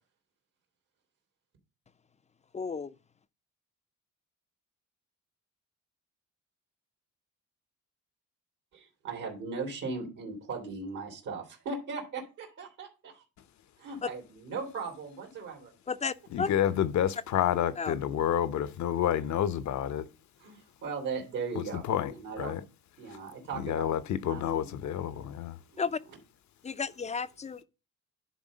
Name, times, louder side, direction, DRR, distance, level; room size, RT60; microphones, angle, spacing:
voice 1, 2.5-2.9 14.0-14.1 15.9-16.5 17.8-17.9 25.8-26.0 26.6-27.6, left 5 dB, 25° left, 0.4 m, -33 dB
voice 2, 8.7-13.2 13.8-15.7 20.4-22.6 23.0-24.8 25.7-26.2, right 4 dB, 75° right, 2.8 m, -38 dB
voice 3, 16.3-20.0 21.6-22.1 22.4-22.6 23.5-25.6, left 10 dB, 65° left, 0.8 m, -29 dB
10.5 x 3.7 x 5.1 m
cardioid pair, 90°, 30 cm